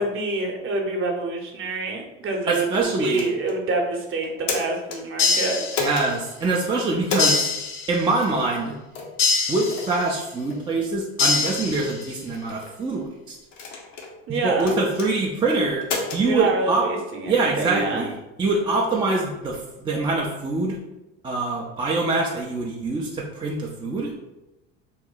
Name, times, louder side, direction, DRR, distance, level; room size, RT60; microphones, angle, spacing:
voice 1, 0.0-5.6 14.3-14.8 16.2-18.1, right 3 dB, 35° right, 1 dB, 0.8 m, -27 dB
voice 2, 2.5-3.3 5.8-7.5 7.9-8.8 9.5-13.4 14.4-15.9 16.1-16.8 17.3-20.8 21.2-24.1, right 3 dB, 15° right, -3 dB, 0.4 m, -24 dB
sound 1, 3.1-3.6 4.2-5.0 5.7-6.1 7.0-7.4 8.2-8.4 8.9-9.2 9.7-9.9 10.5-10.6 11.2-11.5 12.3-12.7 13.5-14.1 14.6-15.1 15.8-16.2, left 4 dB, 90° left, 0.8 m, -30 dB
sound 2, 5.2-6.3 7.2-8.2 9.2-10.2 11.2-12.2, left 4 dB, 35° left, 0.7 m, -24 dB
3.0 x 2.2 x 3.8 m, 0.97 s
supercardioid pair, 100°, 36 cm